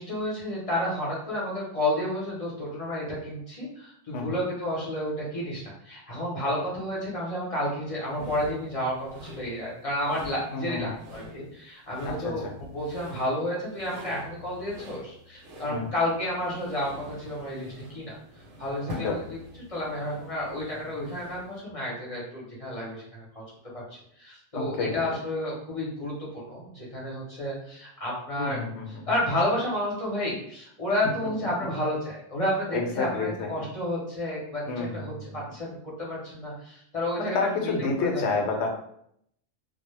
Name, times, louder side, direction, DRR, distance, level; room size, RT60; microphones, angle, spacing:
voice 1, 0.0-18.2 18.6-19.4 19.7-23.4 23.7-23.8 24.2-28.6 28.9-37.7 38.0-38.2, left 1 dB, 35° left, -5 dB, 0.7 m, -31 dB
sound 1, 8.1-21.6, left 1 dB, 85° right, 0.9 m, -44 dB
voice 2, 10.5-10.9 12.0-12.5 15.7-15.9 19.0-19.2 24.5-24.9 28.4-29.1 32.7-33.5 34.7-35.4 37.2-38.7, left 4 dB, 75° left, 2 dB, 0.8 m, -29 dB
2.1 x 2.0 x 3.0 m, 0.70 s
omnidirectional pair, 1.2 m